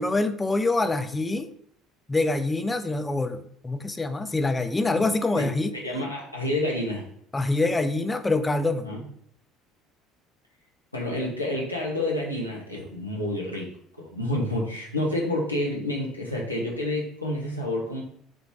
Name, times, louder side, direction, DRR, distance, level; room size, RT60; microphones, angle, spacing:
voice 1, 0.0-1.5 2.1-5.7 7.3-8.9, left 2 dB, 15° left, 9 dB, 0.3 m, -25 dB
voice 2, 5.8-7.0 8.8-9.0 10.9-13.7 14.0-18.0, left 1 dB, 85° left, -3 dB, 0.7 m, -29 dB
3.3 x 2.5 x 3.3 m, 0.67 s
figure-of-eight pair, 60°, 0 cm